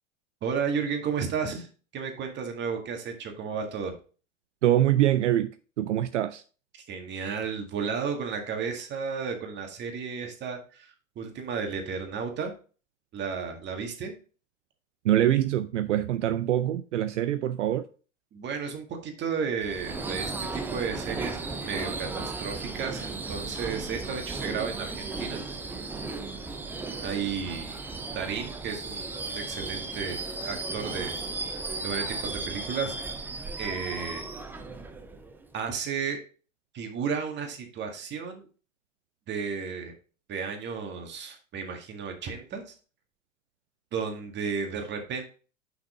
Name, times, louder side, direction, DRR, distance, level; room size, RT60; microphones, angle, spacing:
voice 1, 0.4-1.7 1.9-3.9 6.7-12.5 13.1-14.1 18.3-25.4 27.0-27.8 28.1-31.2 31.8-32.9 33.6-34.2 35.5-36.2 36.7-38.5 39.3-39.9 40.3-42.7 43.9-45.2, right 6 dB, 30° right, 1.8 m, -33 dB
voice 2, 4.6-5.5 5.8-6.4 15.0-17.9, right 12 dB, 70° right, 0.6 m, -24 dB
Subway metro underground / Screech, 19.6-35.6, right 3 dB, 5° right, 0.4 m, -35 dB
6.1 x 5.8 x 3.8 m
hypercardioid pair, 100°, 37 cm